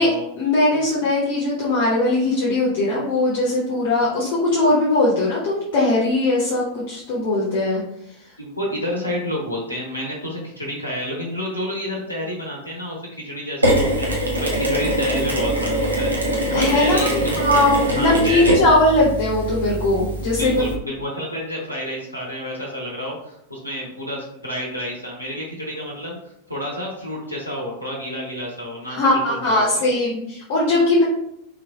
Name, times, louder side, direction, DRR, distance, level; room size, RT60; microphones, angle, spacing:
voice 1, 0.4-7.8 16.5-20.7 28.9-31.0, left 2 dB, 45° left, -5 dB, 0.9 m, -19 dB
voice 2, 8.4-16.1 16.5-18.6 20.4-29.9, equal, 85° left, -3 dB, 0.8 m, -30 dB
Mechanisms, 13.6-20.7, right 1 dB, 80° right, 0.8 m, -23 dB
3.6 x 3.3 x 2.3 m, 0.78 s
figure-of-eight pair, 90°, 0 cm